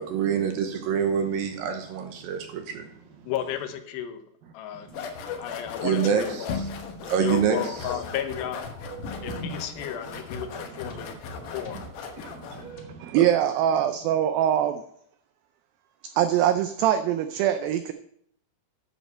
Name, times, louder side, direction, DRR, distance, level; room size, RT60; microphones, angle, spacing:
voice 1, 0.0-2.9 5.8-6.7 7.1-7.7 9.1-9.6 11.0-11.1 11.4-11.5 12.4-13.3, right 7 dB, 70° right, 6 dB, 2.4 m, -27 dB
voice 2, 3.2-4.2 4.5-5.1 5.4-6.7 7.2-8.6 9.2-11.1 11.5-11.8, left 10 dB, 80° left, 8 dB, 3.1 m, -33 dB
sound 1, 4.9-12.7, left 4 dB, 65° left, 2.2 m, -37 dB
sound 2, 7.7-12.9, right 1 dB, 45° left, 1.6 m, -45 dB
voice 3, 13.0-14.8 16.2-17.9, right 10 dB, 90° right, 9 dB, 2.0 m, -23 dB
10.5 x 7.1 x 5.5 m, 0.72 s
omnidirectional pair, 4.8 m